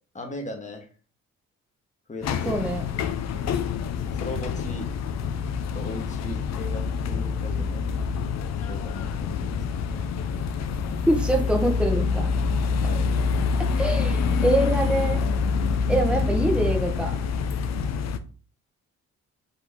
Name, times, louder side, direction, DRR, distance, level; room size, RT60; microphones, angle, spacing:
voice 1, 0.1-0.9 2.1-2.6 4.1-4.9 5.7-7.8 8.6-10.1 12.8-13.1, left 1 dB, 25° left, 4 dB, 1.2 m, -38 dB
sound 1, 2.2-18.2, left 5 dB, 60° left, 0.6 m, -26 dB
voice 2, 2.5-2.8 11.1-12.3 13.8-15.2 15.9-17.2, right 1 dB, 5° right, 3 dB, 0.8 m, -24 dB
4.2 x 3.0 x 3.6 m, 0.38 s
cardioid pair, 90°, 30 cm